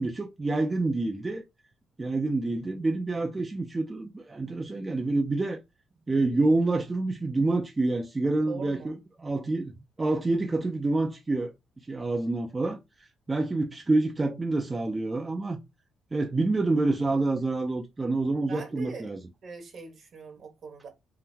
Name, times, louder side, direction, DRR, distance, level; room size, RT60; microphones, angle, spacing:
voice 1, 0.0-1.4 2.0-5.6 6.1-9.7 10.0-15.6 16.1-19.2, right 2 dB, 25° right, 0.4 m, -27 dB
voice 2, 8.5-8.9 18.5-19.1 19.4-20.9, right 4 dB, 55° right, 1.2 m, -42 dB
3.8 x 2.0 x 2.8 m
cardioid pair, 90°, 0 cm